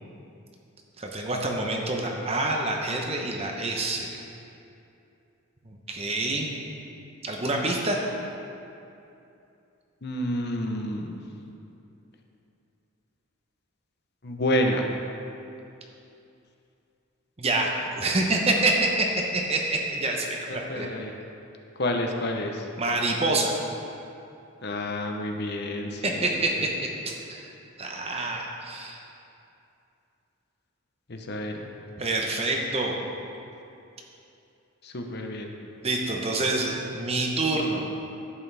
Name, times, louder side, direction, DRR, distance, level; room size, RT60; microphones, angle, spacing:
voice 1, 1.0-4.2 5.7-6.5 7.2-8.0 17.4-19.1 19.3-20.9 22.8-23.5 26.0-26.7 27.0-27.5 27.8-29.0 32.0-32.9 35.8-37.8, right 2 dB, 25° right, 0 dB, 0.8 m, -27 dB
voice 2, 10.0-11.2 14.2-14.9 20.5-21.2 21.8-22.7 24.6-26.2 31.1-31.7 34.8-35.5, left 1 dB, 45° left, 3 dB, 0.7 m, -29 dB
11.0 x 8.3 x 3.4 m, 2.7 s
head